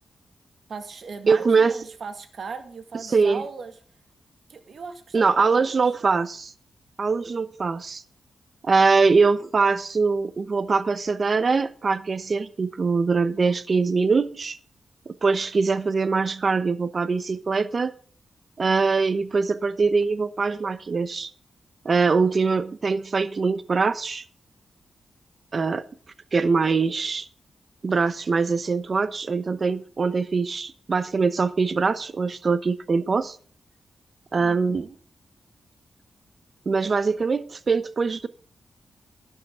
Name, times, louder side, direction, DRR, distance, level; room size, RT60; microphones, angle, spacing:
voice 1, 0.7-3.7 4.5-5.8 34.4-35.0, right 5 dB, 65° right, 1.9 m, -38 dB
voice 2, 1.3-1.8 3.1-3.4 5.1-6.5 7.0-8.0 8.6-14.6 15.1-17.9 18.6-21.3 21.8-24.2 25.5-25.9 26.3-27.3 27.8-33.4 34.3-34.9 36.7-38.3, right 4 dB, 45° right, 0.9 m, -22 dB
13.0 x 11.0 x 3.6 m
cardioid pair, 90°, 0 cm